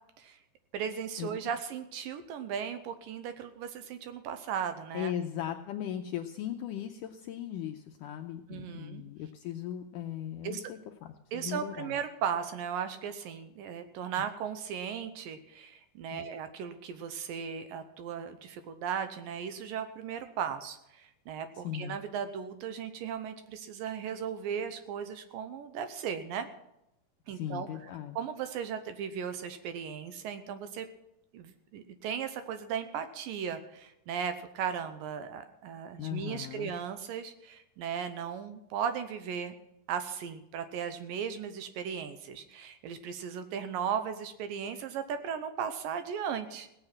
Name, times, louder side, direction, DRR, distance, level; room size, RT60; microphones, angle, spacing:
voice 1, 0.7-5.1 8.5-9.0 10.4-10.6 11.3-26.5 27.3-27.9 28.2-30.9 31.3-39.6 39.9-46.7, right 7 dB, 75° right, 9 dB, 2.3 m, -36 dB
voice 2, 4.9-10.8 11.3-12.0 16.1-16.3 21.6-22.0 27.3-28.2 36.0-36.7, left 10 dB, 85° left, 5 dB, 1.9 m, -38 dB
17.5 x 8.9 x 5.9 m, 0.86 s
omnidirectional pair, 4.4 m